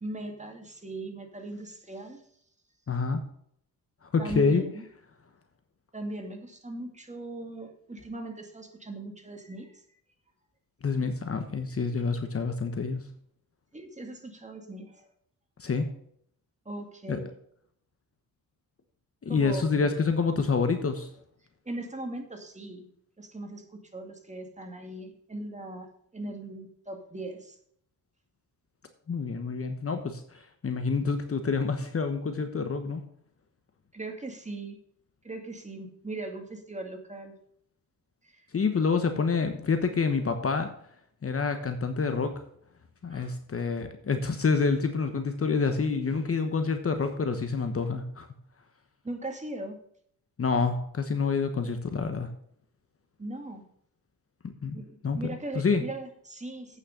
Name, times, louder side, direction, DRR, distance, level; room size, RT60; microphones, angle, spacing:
voice 1, 0.0-2.2 4.2-4.8 5.9-9.8 13.7-15.1 16.7-17.3 19.3-20.1 21.6-22.9 23.2-23.6 23.9-25.9 26.1-27.6 33.9-34.8 35.2-37.4 38.2-38.4 43.1-43.3 49.0-49.8 53.2-53.7 54.7-56.8, right 2 dB, 20° right, 4 dB, 2.3 m, -39 dB
voice 2, 2.9-3.2 4.1-4.6 10.8-13.0 15.6-15.9 17.1-17.2 19.2-21.1 29.1-33.0 38.5-40.7 41.2-42.4 43.0-48.3 50.4-52.3 54.6-54.8 55.0-55.2 55.5-55.8, left 4 dB, 35° left, 7 dB, 1.2 m, -27 dB
8.8 x 6.4 x 6.5 m, 0.66 s
cardioid pair, 85°, 39 cm